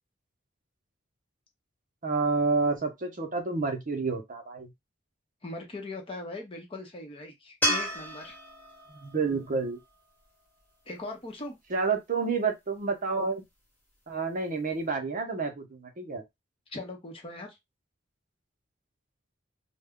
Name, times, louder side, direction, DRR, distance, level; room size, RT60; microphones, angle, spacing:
voice 1, 2.0-4.7 8.9-9.8 11.7-13.4 14.1-16.2, right 4 dB, 45° right, 0.7 m, -29 dB
voice 2, 5.4-8.4 10.9-11.6 16.7-17.6, left 2 dB, 30° left, 0.7 m, -40 dB
sound 1, 7.6-10.9 14.1-14.2, equal, 10° left, 1.1 m, -33 dB
2.3 x 2.1 x 3.5 m
head